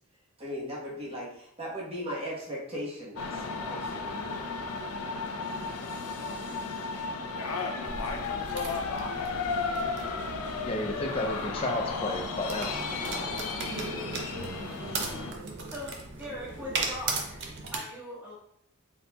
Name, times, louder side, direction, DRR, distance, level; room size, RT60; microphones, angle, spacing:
voice 1, 0.4-4.5, equal, 25° right, -4 dB, 1.1 m, -38 dB
sound 1, 3.2-15.3, left 4 dB, 85° left, 0.5 m, -34 dB
sound 2, 7.8-17.8, right 3 dB, 55° right, 0.6 m, -37 dB
voice 2, 10.6-12.7, left 1 dB, 25° left, 2 dB, 0.5 m, -32 dB
voice 3, 15.7-18.3, left 1 dB, 10° right, -7 dB, 1.2 m, -41 dB
4.1 x 4.0 x 2.2 m, 0.71 s
head